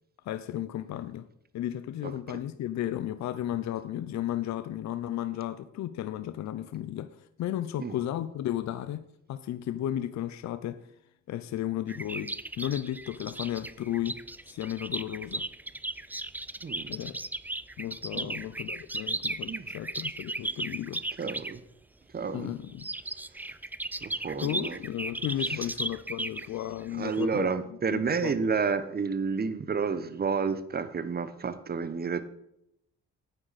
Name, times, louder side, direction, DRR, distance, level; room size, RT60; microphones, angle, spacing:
voice 1, 0.2-1.3 1.5-9.0 9.3-10.9 11.3-14.2 14.5-15.5 16.9-17.2 17.8-21.0 22.3-22.9 24.4-27.5 27.9-28.5, left 12 dB, 65° left, 0.6 m, -34 dB
sound 1, 11.9-21.6 22.7-27.2, right 2 dB, 5° right, 0.3 m, -36 dB
voice 2, 16.6-17.0 18.2-18.4 19.5-19.7 21.2-21.6 22.1-22.5 24.0-24.8 27.0-32.2, right 5 dB, 30° right, 0.9 m, -30 dB
9.6 x 8.9 x 4.1 m
cardioid pair, 90°, 30 cm